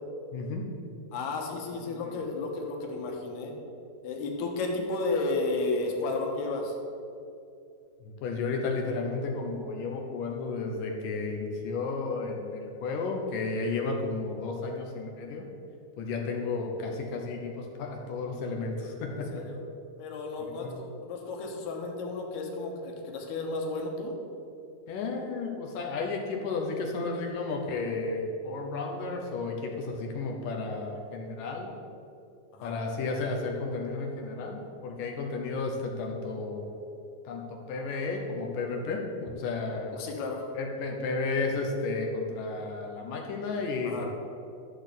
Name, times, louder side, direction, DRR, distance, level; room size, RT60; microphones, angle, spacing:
voice 1, 0.3-0.6 1.7-2.2 8.0-15.5 16.0-19.3 20.5-20.8 24.9-31.7 32.6-36.8 37.2-40.0 40.5-44.0, left 3 dB, 70° left, 1 dB, 2.4 m, -33 dB
voice 2, 1.1-3.5 4.0-6.8 19.3-19.6 20.0-24.1 32.5-32.8 39.9-40.5 43.8-44.1, left 3 dB, 90° left, 0 dB, 3.4 m, -33 dB
13.0 x 4.3 x 8.3 m, 2.6 s
omnidirectional pair, 4.4 m